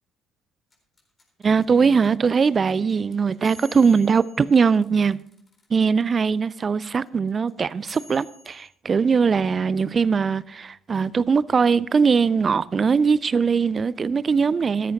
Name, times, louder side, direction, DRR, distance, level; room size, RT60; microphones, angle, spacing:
sound 1, 0.7-5.8 6.1-6.2 6.4-8.7, left 2 dB, 25° left, 4.0 m, -49 dB
voice 1, 1.4-5.2 5.7-14.9, right 5 dB, 30° right, 0.4 m, -21 dB
16.0 x 13.5 x 2.8 m
figure-of-eight pair, 50°, 0 cm